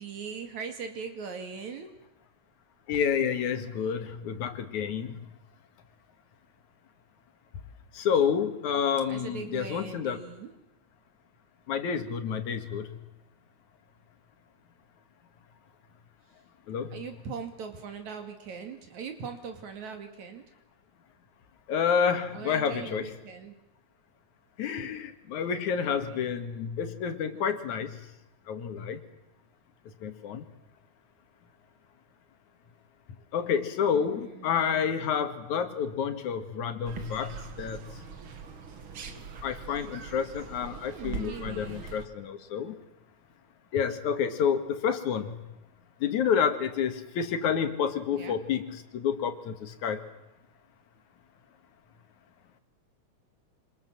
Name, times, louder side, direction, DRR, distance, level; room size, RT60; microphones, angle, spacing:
voice 1, 0.0-1.9 9.1-10.5 16.9-20.4 22.3-23.5 25.9-26.2 33.9-35.0 40.7-41.8 48.1-48.4, right 6 dB, 70° right, 6 dB, 3.7 m, -40 dB
voice 2, 2.9-5.3 7.9-10.2 11.7-13.0 16.7-17.0 21.7-23.1 24.6-28.0 28.5-29.0 30.0-30.5 33.3-37.9 39.1-42.8 43.7-45.4 46.0-50.0, left 7 dB, 75° left, 8 dB, 3.3 m, -29 dB
sound 1, 36.8-42.1, right 5 dB, 50° right, 2.2 m, -42 dB
27.5 x 25.5 x 7.6 m, 0.93 s
omnidirectional pair, 3.4 m